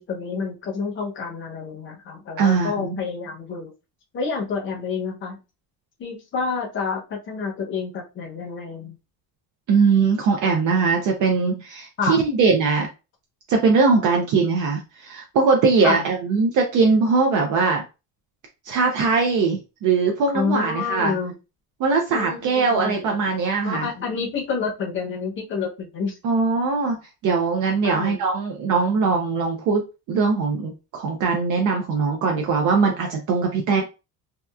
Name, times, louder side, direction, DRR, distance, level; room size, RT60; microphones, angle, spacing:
voice 1, 0.0-3.7 4.1-5.4 6.0-9.0 12.0-12.2 15.8-16.1 20.3-21.3 22.1-23.1 23.6-26.1 27.8-28.2 33.7-33.8, left 5 dB, 30° left, 0 dB, 0.7 m, -28 dB
voice 2, 2.4-3.0 9.7-12.9 13.5-17.8 18.7-21.1 21.8-23.9 26.2-27.0 27.2-29.8 30.1-33.8, right 4 dB, 55° right, 2 dB, 0.5 m, -21 dB
2.8 x 2.2 x 2.2 m, 0.29 s
cardioid pair, 165°, 37 cm